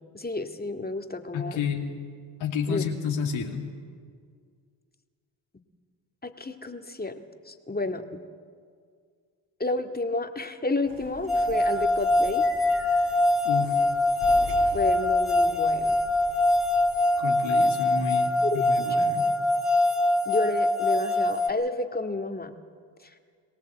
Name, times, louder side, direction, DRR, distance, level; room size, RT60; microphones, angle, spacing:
voice 1, 0.1-1.6 2.7-2.8 6.2-7.2 7.5-8.2 9.6-12.4 14.7-16.0 18.4-18.9 20.3-22.5, left 2 dB, 20° left, 5 dB, 2.1 m, -30 dB
voice 2, 1.3-1.9 2.4-3.7 13.4-13.9 17.2-19.3, left 6 dB, 75° left, 2 dB, 2.5 m, -30 dB
sound 1, 10.8-17.0, right 1 dB, 65° right, 6.6 m, -43 dB
sound 2, 11.3-21.5, left 2 dB, ahead, 2.3 m, -23 dB
23.0 x 18.0 x 8.1 m, 2.1 s
supercardioid pair, 50°, 47 cm